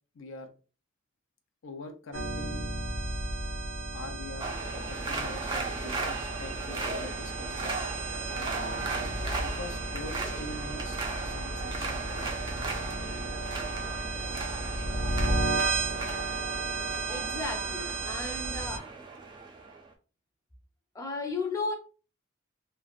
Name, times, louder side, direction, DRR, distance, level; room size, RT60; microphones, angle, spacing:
voice 1, 0.1-0.5 1.6-2.7 3.9-4.5 4.7-7.7 8.3-8.9 9.4-11.0 11.2-12.3, left 2 dB, 80° left, 0.5 m, -44 dB
sound 1, 2.1-18.8, right 2 dB, 75° right, 0.8 m, -33 dB
sound 2, 4.4-19.9, right 3 dB, 25° right, 0.5 m, -37 dB
voice 2, 17.1-18.9 20.9-21.7, left 3 dB, 15° left, 0.6 m, -34 dB
3.1 x 2.4 x 2.4 m
head